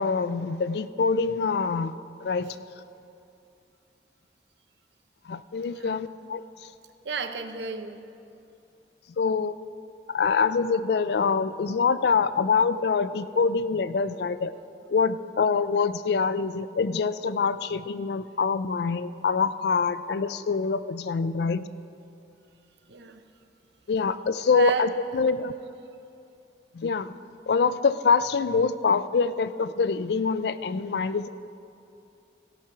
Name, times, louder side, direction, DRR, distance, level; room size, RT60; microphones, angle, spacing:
voice 1, 0.0-1.9 2.2-2.6 5.3-6.4 9.2-9.5 10.1-14.5 14.9-21.6 23.9-25.5 26.7-27.1 27.5-31.3, left 5 dB, 65° left, 14 dB, 0.4 m, -25 dB
voice 2, 5.6-6.0 7.0-8.0 22.9-23.2 24.5-24.9, right 5 dB, 75° right, 8 dB, 0.7 m, -32 dB
15.5 x 6.1 x 5.8 m, 2.7 s
head